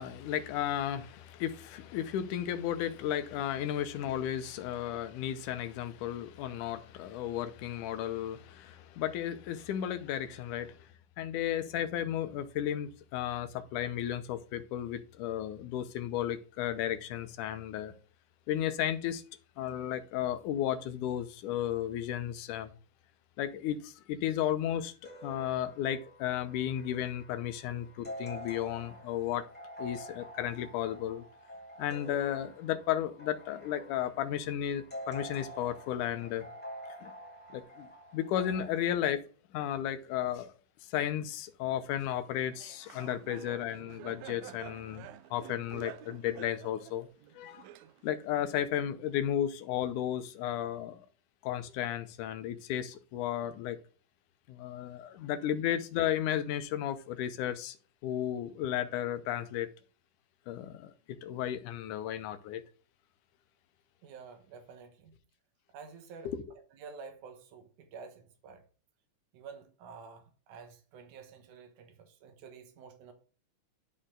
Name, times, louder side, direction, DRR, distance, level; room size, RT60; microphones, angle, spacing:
voice 1, 0.0-10.9 11.2-17.9 18.5-19.2 19.6-22.7 23.4-24.9 25.2-29.5 29.8-31.2 31.8-36.5 37.0-37.1 37.5-39.2 39.5-40.5 40.8-47.1 47.3-47.7 48.0-51.1 51.4-53.8 54.5-57.8 58.0-59.7 60.5-60.9 61.2-62.6 66.3-66.4, left 11 dB, 75° left, 2.2 m, -34 dB
sound 1, 25.0-38.8, equal, 5° left, 1.2 m, -48 dB
Laughter, 42.4-48.3, right 13 dB, 90° right, 1.5 m, -49 dB
voice 2, 55.0-55.3 64.0-65.2 65.7-66.3 66.7-68.7 69.3-73.1, right 5 dB, 70° right, 2.6 m, -50 dB
11.0 x 4.3 x 3.8 m
omnidirectional pair, 3.8 m